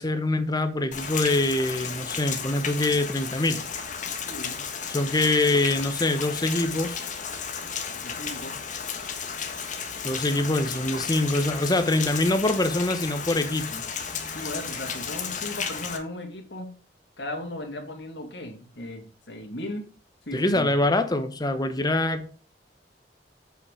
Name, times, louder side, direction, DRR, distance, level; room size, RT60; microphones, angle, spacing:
voice 1, 0.0-3.6 4.9-7.1 10.0-13.8 20.3-22.3, left 2 dB, 25° left, 1.0 m, -24 dB
Rain, 0.9-16.0, left 6 dB, 45° left, 1.4 m, -33 dB
voice 2, 4.3-4.6 8.0-8.6 14.3-16.7 17.2-19.9 20.3-20.7, left 1 dB, 70° left, 2.4 m, -36 dB
8.0 x 5.7 x 4.8 m
head